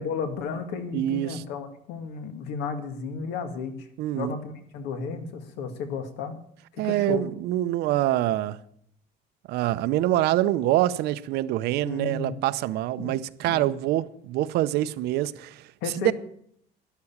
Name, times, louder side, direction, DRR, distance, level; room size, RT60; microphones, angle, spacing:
voice 1, 0.0-3.9 4.1-6.4 6.7-7.2 11.8-12.4 13.0-13.2 13.5-13.7 15.8-16.1, left 5 dB, 85° left, 2.0 m, -33 dB
voice 2, 0.9-1.4 4.0-4.3 6.8-8.6 9.5-15.6 16.0-16.1, right 14 dB, 70° right, 0.7 m, -25 dB
13.0 x 11.0 x 7.3 m
cardioid pair, 175°, 17 cm